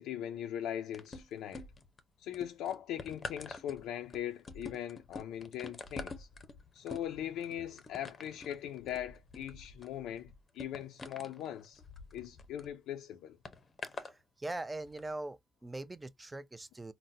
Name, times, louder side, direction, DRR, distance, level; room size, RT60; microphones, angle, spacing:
voice 1, 0.0-1.6 2.2-6.3 6.7-11.8 12.1-13.4, left 10 dB, 90° left, 0.4 m, -40 dB
sound 1, 0.9-2.0 2.3-12.7 13.5-14.1 14.9-15.0, left 3 dB, 35° left, 0.6 m, -47 dB
voice 2, 13.8-16.9, right 2 dB, 15° right, 0.4 m, -42 dB
3.9 x 2.1 x 2.6 m
cardioid pair, 90°, 0 cm